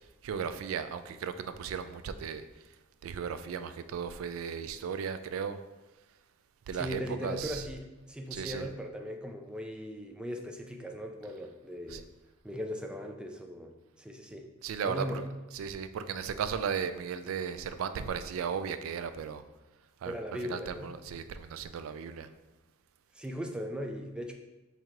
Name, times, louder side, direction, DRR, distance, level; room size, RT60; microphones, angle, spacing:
voice 1, 0.2-2.4 3.0-5.6 6.7-7.6 8.3-8.6 11.9-12.0 14.6-15.0 15.5-19.4 20.0-20.1 20.5-22.3, right 7 dB, 85° right, 10 dB, 0.3 m, -35 dB
voice 2, 6.7-12.1 12.4-14.5 14.8-15.3 20.0-20.9 23.1-24.3, equal, 5° right, 3 dB, 0.3 m, -38 dB
4.5 x 2.7 x 3.7 m, 1.1 s
head